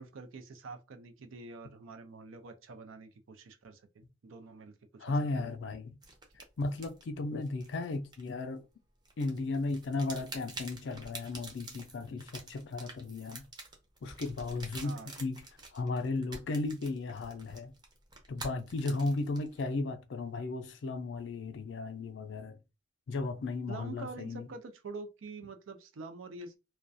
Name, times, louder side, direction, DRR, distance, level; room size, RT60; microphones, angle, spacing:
voice 1, 0.0-5.5 14.8-15.1 23.7-26.6, right 3 dB, 85° right, 0.5 m, -46 dB
voice 2, 5.0-6.0 6.6-8.7 9.2-13.4 14.0-15.4 15.7-17.7 18.3-22.6 23.1-24.5, left 3 dB, 65° left, 0.4 m, -35 dB
sound 1, 6.0-8.7 9.1-19.6, right 3 dB, 20° right, 0.5 m, -48 dB
2.3 x 2.1 x 2.5 m
head